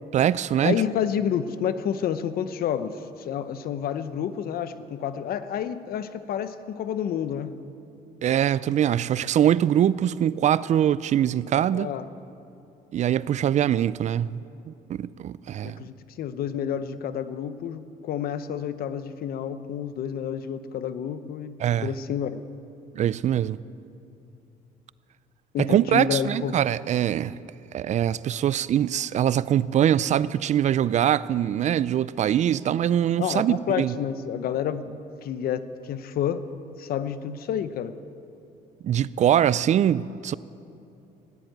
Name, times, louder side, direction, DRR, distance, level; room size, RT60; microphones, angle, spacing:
voice 1, 0.1-0.8 8.2-11.9 12.9-14.4 14.7-15.8 21.6-21.9 22.9-23.6 25.6-27.4 27.7-33.9 38.8-40.3, right 10 dB, 45° right, 0.4 m, -23 dB
voice 2, 0.6-7.6 11.7-12.1 15.6-22.4 25.5-26.6 33.2-34.9 35.2-36.5 36.8-37.9, left 9 dB, 60° left, 0.8 m, -29 dB
14.5 x 11.0 x 9.0 m
cardioid pair, 110°, 17 cm